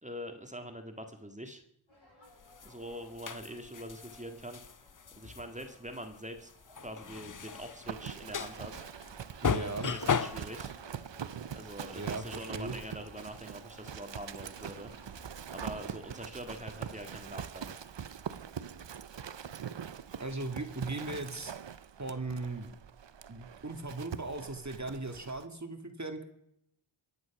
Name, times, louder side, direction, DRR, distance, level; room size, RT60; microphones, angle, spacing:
voice 1, 0.0-1.6 2.6-4.8 5.2-6.5 6.8-8.8 9.5-10.7 11.5-14.9 15.5-17.8, equal, 15° right, 6 dB, 1.8 m, -44 dB
sound 1, 1.9-16.0, left 1 dB, 75° left, 7.7 m, -59 dB
sound 2, 2.4-10.6, left 6 dB, 40° left, 0.7 m, -36 dB
Livestock farm animals working animals, 7.8-25.4, right 8 dB, 60° right, 0.8 m, -43 dB
voice 2, 9.4-9.9 11.9-12.8 20.2-21.5 22.0-22.7 23.3-26.2, right 2 dB, 35° right, 7 dB, 1.9 m, -38 dB
23.5 x 9.4 x 5.9 m, 0.78 s
wide cardioid pair, 60°, 49 cm